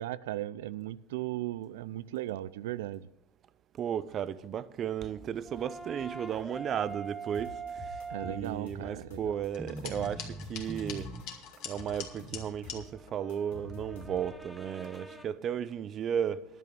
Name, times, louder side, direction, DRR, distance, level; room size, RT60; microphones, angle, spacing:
voice 1, 0.0-3.1 8.1-9.4 9.8-10.1, right 14 dB, 85° right, 0.4 m, -37 dB
voice 2, 3.7-11.1 11.6-16.4, right 9 dB, 35° right, 0.6 m, -34 dB
sound 1, 5.5-8.7 9.4-15.3, right 3 dB, ahead, 0.9 m, -43 dB
sound 2, 7.3-9.5 9.8-11.2 11.5-14.5, left 3 dB, 85° left, 2.7 m, -48 dB
sound 3, 9.5-12.8, left 8 dB, 55° left, 2.1 m, -44 dB
11.0 x 8.4 x 6.8 m
supercardioid pair, 130°, 0 cm